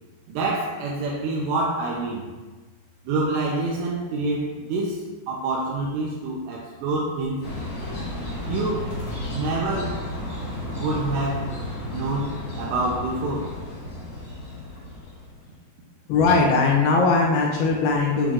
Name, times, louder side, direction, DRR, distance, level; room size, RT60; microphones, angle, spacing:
voice 1, 0.3-2.3 3.1-7.4 8.5-8.9 9.3-10.0 10.8-11.5 11.9-13.5, right 2 dB, 80° right, -2 dB, 2.7 m, -27 dB
sound 1, 7.4-15.5, left 1 dB, 55° left, 1.0 m, -33 dB
voice 2, 16.1-18.3, left 3 dB, 80° left, -1 dB, 2.3 m, -20 dB
8.7 x 3.0 x 3.7 m, 1.3 s
omnidirectional pair, 5.0 m